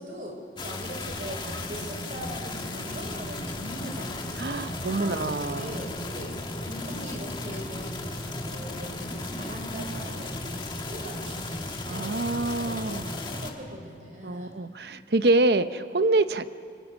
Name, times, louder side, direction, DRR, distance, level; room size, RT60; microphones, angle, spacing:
voice 1, 0.0-8.0 8.3-14.6, equal, 45° right, 2 dB, 4.2 m, -41 dB
sound 1, 0.6-13.5, left 2 dB, 25° left, 1.6 m, -35 dB
voice 2, 4.4-5.8 11.9-13.2 14.2-16.5, right 2 dB, 70° right, 12 dB, 0.7 m, -26 dB
26.0 x 24.5 x 6.2 m, 2.3 s
head